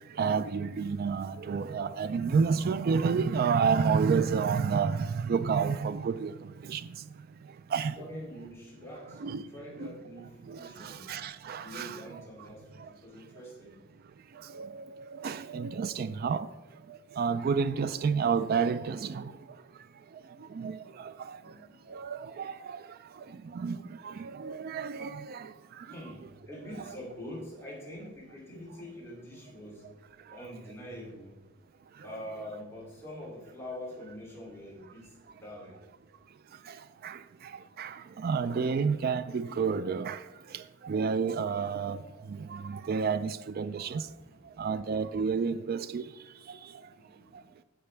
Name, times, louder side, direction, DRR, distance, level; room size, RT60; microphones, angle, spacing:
voice 1, 0.2-6.3 6.7-6.8 7.7-7.9 9.2-9.4 9.8-9.9 10.5-12.0 14.5-14.8 15.2-16.5 17.2-19.3 20.6-21.4 21.9-22.8 23.5-23.8 24.0-25.5 26.9-27.0 37.0-37.2 37.8-40.2 40.8-42.0 42.5-44.0 44.6-46.0, right 5 dB, 50° right, 0.3 m, -29 dB
voice 2, 8.0-11.1 11.6-13.8 21.4-21.8 25.8-29.9 30.3-31.4 32.0-35.8 44.0-44.7 46.8-47.4, equal, 15° left, 2.8 m, -45 dB
15.0 x 5.8 x 3.3 m
head